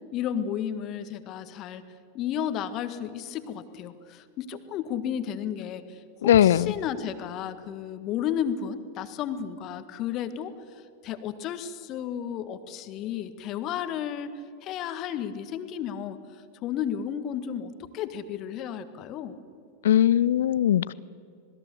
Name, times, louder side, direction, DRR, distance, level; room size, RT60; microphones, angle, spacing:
voice 1, 0.1-1.8 2.1-19.4, left 9 dB, 35° left, 11 dB, 1.7 m, -33 dB
voice 2, 6.2-6.7 19.8-20.9, left 11 dB, 60° left, 21 dB, 0.5 m, -20 dB
26.5 x 20.5 x 7.1 m, 2.3 s
figure-of-eight pair, 90°, 0 cm